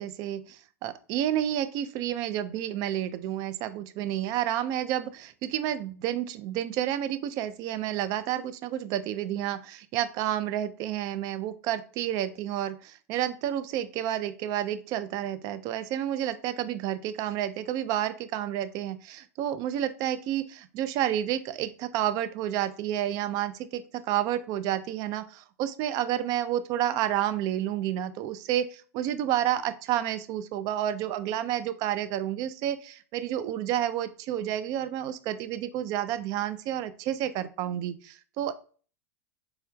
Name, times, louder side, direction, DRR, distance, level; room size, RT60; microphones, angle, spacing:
voice 1, 0.0-38.5, right 11 dB, 45° right, 12 dB, 0.4 m, -30 dB
4.3 x 3.4 x 2.2 m, 0.40 s
hypercardioid pair, 100°, 9 cm